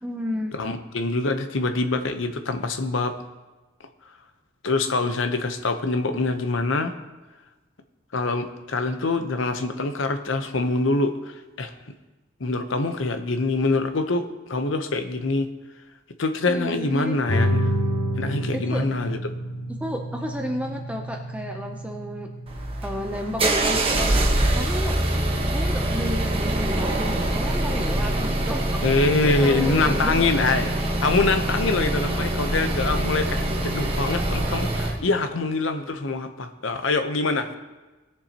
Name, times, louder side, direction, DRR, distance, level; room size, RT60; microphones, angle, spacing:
voice 1, 0.0-0.5 16.5-17.2 18.5-18.8 19.7-22.3 22.8-24.1 24.5-25.0 25.5-28.8 29.4-30.2, equal, 5° right, 3 dB, 0.6 m, -32 dB
voice 2, 0.5-3.1 4.6-6.9 8.1-11.7 12.4-15.5 16.2-17.6 18.2-19.2 28.8-37.5, left 3 dB, 75° left, 8 dB, 0.8 m, -24 dB
sound 1, 17.3-28.3, equal, 45° left, 2.4 m, -31 dB
sound 2, 22.5-35.0, right 1 dB, 30° right, 1.2 m, -24 dB
19.0 x 7.0 x 2.9 m, 1.2 s
head